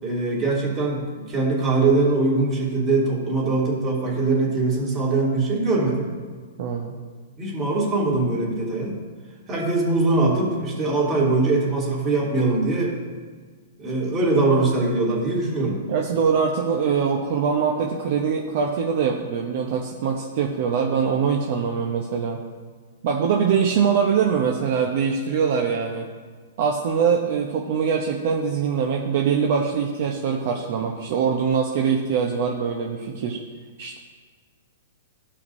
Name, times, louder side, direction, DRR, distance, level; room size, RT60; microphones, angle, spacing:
voice 1, 0.0-6.1 7.4-8.9 9.5-12.9 13.8-15.8, right 3 dB, 25° right, -4 dB, 2.7 m, -22 dB
voice 2, 6.6-6.9 15.9-22.4 23.0-26.1 26.6-33.4 33.8-34.0, right 6 dB, 50° right, 1 dB, 0.9 m, -23 dB
16.0 x 5.7 x 2.7 m, 1.6 s
hypercardioid pair, 145°, 0 cm